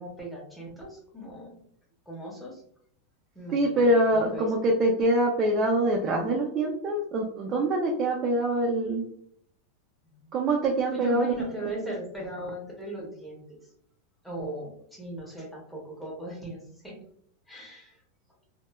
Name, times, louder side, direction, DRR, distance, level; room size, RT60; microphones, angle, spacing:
voice 1, 0.0-1.7 2.1-2.6 3.3-3.8 4.1-4.5 10.1-10.3 10.9-13.6 14.2-16.9 17.5-18.0, right 1 dB, ahead, -3 dB, 0.7 m, -38 dB
voice 2, 3.5-9.0 10.3-11.4, right 1 dB, 30° right, 1 dB, 0.3 m, -24 dB
2.9 x 2.1 x 2.2 m, 0.67 s
supercardioid pair, 155°, 0 cm